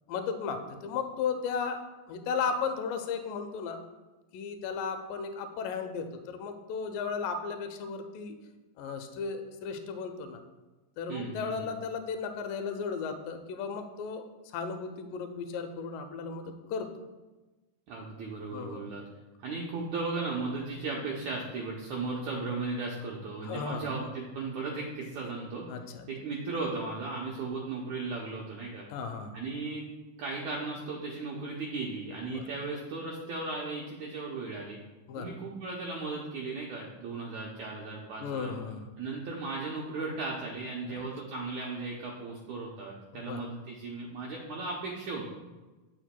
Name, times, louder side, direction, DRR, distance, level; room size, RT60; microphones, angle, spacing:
voice 1, 0.1-1.8 2.1-3.8 4.3-8.4 8.8-10.4 11.0-14.2 14.5-16.9 18.5-19.0 23.4-23.9 25.7-26.1 28.9-29.3 32.2-32.4 35.1-35.3 38.2-38.9 40.9-41.1 43.1-43.5, left 5 dB, 80° left, 7 dB, 2.2 m, -35 dB
voice 2, 11.1-11.7 17.9-19.0 19.4-25.7 26.1-28.8 29.3-29.8 30.2-34.8 35.2-38.5 39.0-45.3, right 3 dB, 75° right, -3 dB, 1.7 m, -36 dB
8.9 x 7.0 x 2.2 m, 1.2 s
omnidirectional pair, 4.1 m